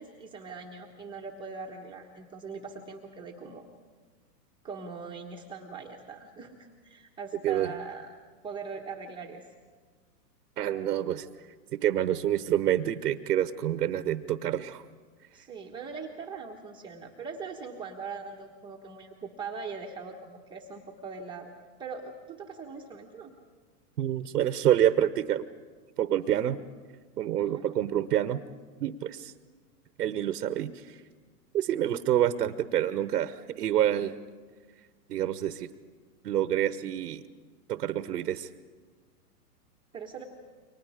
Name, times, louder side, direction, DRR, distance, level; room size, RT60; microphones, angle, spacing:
voice 1, 0.0-3.7 4.6-8.1 8.4-9.5 15.3-21.5 21.8-23.3 27.4-27.7 39.9-40.2, right 5 dB, 10° right, -1 dB, 1.2 m, -41 dB
voice 2, 10.6-11.3 11.7-14.8 24.0-25.5 26.0-26.6 27.2-28.4 28.8-29.3 30.0-31.0 31.5-34.1 35.1-35.7 36.2-37.2 37.7-38.5, right 11 dB, 80° right, 11 dB, 1.1 m, -27 dB
29.5 x 24.0 x 5.0 m, 1.5 s
hypercardioid pair, 140°, 48 cm